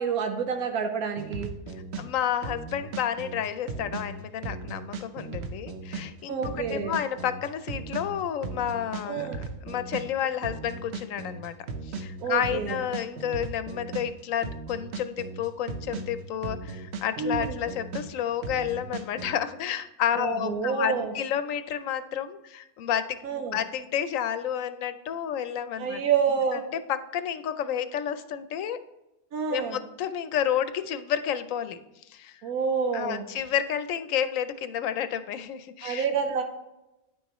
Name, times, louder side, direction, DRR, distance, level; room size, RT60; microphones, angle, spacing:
voice 1, 0.0-1.5 6.3-6.9 9.1-9.4 12.2-12.8 17.2-17.6 20.2-21.1 23.2-23.6 25.8-26.6 29.3-29.8 32.4-33.2 35.8-36.4, right 6 dB, 85° right, 5 dB, 1.3 m, -28 dB
sound 1, 1.2-19.4, right 4 dB, 55° right, 0.9 m, -37 dB
voice 2, 2.0-11.5 11.8-23.2 23.5-26.0 26.5-28.8 29.5-31.8 32.1-32.4 32.9-36.1, left 9 dB, 70° left, 12 dB, 0.9 m, -30 dB
9.5 x 6.3 x 3.0 m, 0.93 s
omnidirectional pair, 1.5 m